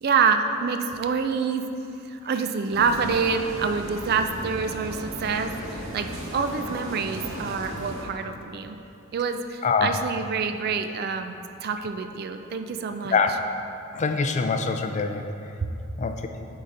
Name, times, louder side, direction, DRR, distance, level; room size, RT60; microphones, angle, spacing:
voice 1, 0.0-1.6 2.1-8.8 9.1-13.2, right 5 dB, 50° right, 7 dB, 0.4 m, -27 dB
sound 1, 2.7-8.1, equal, 75° right, 0.8 m, -35 dB
voice 2, 9.6-10.0 13.1-13.3 13.9-15.3 16.0-16.3, left 5 dB, 35° left, 6 dB, 0.3 m, -24 dB
8.6 x 4.0 x 3.8 m, 2.8 s
head